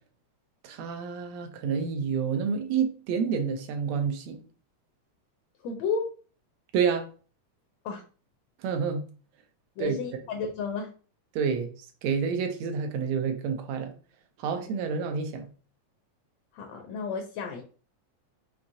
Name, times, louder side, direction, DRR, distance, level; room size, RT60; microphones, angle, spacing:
voice 1, 0.6-4.4 6.7-7.1 8.6-9.0 9.8-10.0 11.4-11.7 12.0-13.9 14.4-15.5, right 6 dB, 75° right, 1.7 m, -28 dB
voice 2, 5.6-6.1 7.9-8.0 9.8-10.9 14.6-14.7 16.5-17.6, left 5 dB, 75° left, 1.6 m, -32 dB
5.9 x 2.7 x 2.6 m
omnidirectional pair, 3.3 m